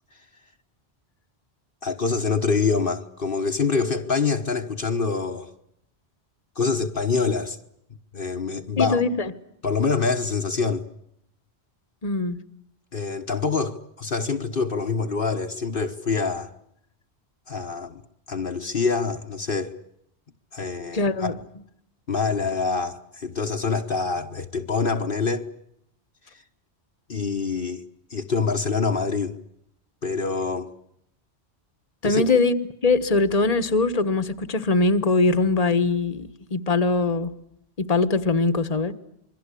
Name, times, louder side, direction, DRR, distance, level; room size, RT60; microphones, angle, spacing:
voice 1, 1.8-5.5 6.6-7.6 8.1-9.0 9.6-10.8 12.9-16.5 17.5-18.0 18.3-19.7 20.5-21.4 22.1-25.5 27.1-27.8 28.1-29.3 30.0-30.7 32.0-32.2, left 4 dB, 55° left, 1.4 m, -25 dB
voice 2, 8.8-9.3 12.0-12.4 20.9-21.3 32.0-32.6 32.8-37.3 37.8-38.9, left 3 dB, 35° left, 1.5 m, -22 dB
27.5 x 23.0 x 8.4 m
omnidirectional pair, 1.1 m